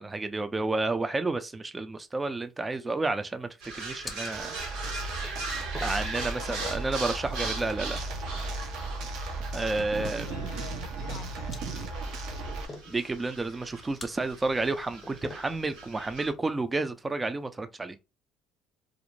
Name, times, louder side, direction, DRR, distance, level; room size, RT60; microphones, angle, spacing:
voice 1, 0.0-4.9 5.8-8.0 9.5-10.3 12.9-18.0, right 3 dB, 20° right, 0.4 m, -31 dB
sound 1, 2.1-17.4, left 2 dB, 25° left, 0.7 m, -51 dB
sound 2, 3.6-16.3, right 3 dB, 90° right, 1.3 m, -40 dB
sound 3, 4.3-12.7, right 2 dB, 70° right, 0.6 m, -36 dB
voice 2, 6.1-7.6 10.0-12.6, left 7 dB, 75° left, 0.5 m, -46 dB
2.5 x 2.0 x 3.0 m
supercardioid pair, 75°, 0 cm